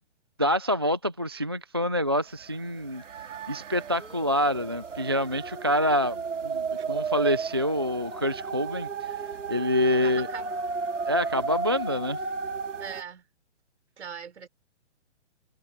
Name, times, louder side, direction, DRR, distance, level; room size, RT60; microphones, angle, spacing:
voice 1, 0.4-3.0 3.5-9.2 9.5-10.3 11.1-12.2, left 1 dB, 20° right, 0.4 m, -26 dB
sound 1, 2.4-2.5 2.8-13.0, right 5 dB, 90° right, 3.5 m, -33 dB
voice 2, 10.0-10.6 12.8-13.3 14.0-14.5, right 7 dB, 65° right, 4.8 m, -40 dB
hypercardioid pair, 175°, 36 cm